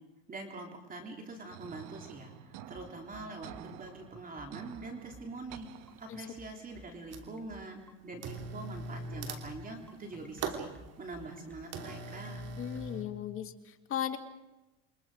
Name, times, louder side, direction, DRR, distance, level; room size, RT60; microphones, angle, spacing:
voice 1, 0.3-5.7 6.0-10.7 11.0-12.5, right 2 dB, 25° right, 2 dB, 3.6 m, -44 dB
sound 1, 1.5-6.5, right 11 dB, 70° right, 1.3 m, -50 dB
sound 2, 2.7-12.9, left 1 dB, 5° left, 1.7 m, -54 dB
sound 3, 5.3-5.4 5.9-6.5 6.8-7.5 8.2-13.0, right 4 dB, 45° right, 3.0 m, -41 dB
voice 2, 12.6-14.2, left 10 dB, 40° left, 6 dB, 2.1 m, -37 dB
28.5 x 23.5 x 5.1 m, 1.1 s
supercardioid pair, 120°, 34 cm